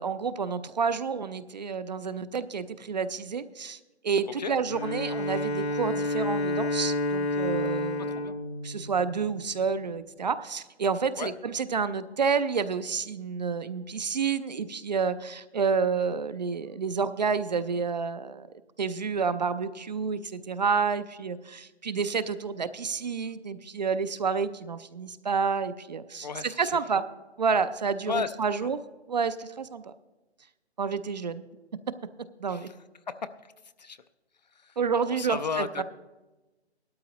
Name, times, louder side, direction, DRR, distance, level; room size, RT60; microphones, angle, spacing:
voice 1, 0.0-8.2 8.6-18.5 18.8-27.0 27.4-28.8 29.1-29.9 30.8-31.4 32.4-32.7 34.8-35.8, right 5 dB, 40° right, 13 dB, 0.4 m, -29 dB
Bowed string instrument, 4.7-9.5, left 2 dB, 70° left, 1.4 m, -30 dB
voice 2, 26.2-26.7 28.1-28.3 32.5-32.6 33.1-33.2 33.8-34.0 35.1-35.8, left 5 dB, 40° left, 13 dB, 0.4 m, -33 dB
17.0 x 12.5 x 2.9 m, 1.1 s
hypercardioid pair, 155°, 33 cm